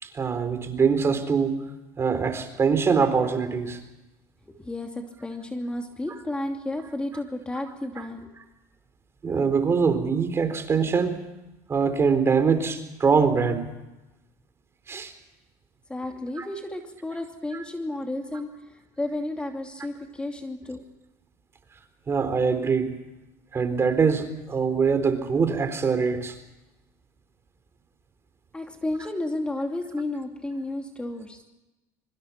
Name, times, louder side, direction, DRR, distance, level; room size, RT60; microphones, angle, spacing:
voice 1, 0.0-1.5 2.0-3.8 6.1-6.2 8.0-8.1 9.2-11.2 11.7-13.7 14.9-15.1 16.4-16.5 22.1-22.9 23.5-26.3 29.0-29.1, right 5 dB, 30° right, 9 dB, 4.1 m, -23 dB
voice 2, 4.5-8.3 15.9-20.8 28.5-31.4, left 1 dB, 10° left, 4 dB, 2.8 m, -32 dB
25.0 x 24.5 x 6.0 m, 1.0 s
supercardioid pair, 95°, 8 cm